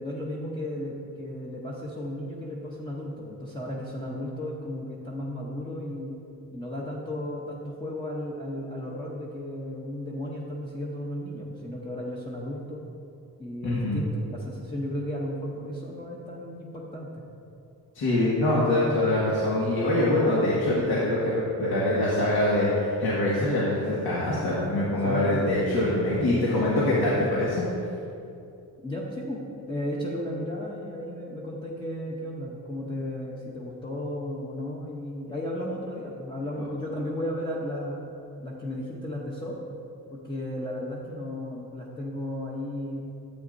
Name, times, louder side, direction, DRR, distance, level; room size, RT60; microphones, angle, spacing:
voice 1, 0.0-6.2 6.5-12.9 13.4-17.2 25.0-25.4 28.8-38.0 38.4-39.6 40.1-43.0, left 1 dB, 15° left, -5 dB, 0.7 m, -34 dB
voice 2, 13.6-14.1 17.9-27.6, left 1 dB, 75° left, -7 dB, 1.7 m, -24 dB
12.5 x 8.2 x 2.6 m, 2.6 s
wide cardioid pair, 180°, 37 cm